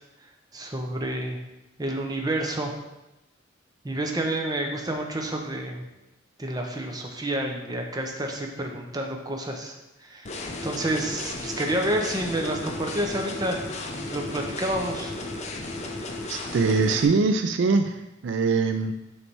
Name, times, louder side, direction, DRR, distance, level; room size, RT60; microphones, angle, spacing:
voice 1, 0.5-1.4 1.8-2.7 3.8-5.8 6.4-9.7 10.0-10.3 10.6-15.1, right 1 dB, 20° right, 2 dB, 0.7 m, -29 dB
sound 1, 10.3-17.1, left 2 dB, 35° left, 0.6 m, -34 dB
voice 2, 16.3-17.9 18.2-18.9, right 4 dB, 70° right, 7 dB, 0.4 m, -22 dB
6.8 x 3.3 x 4.4 m, 0.96 s
head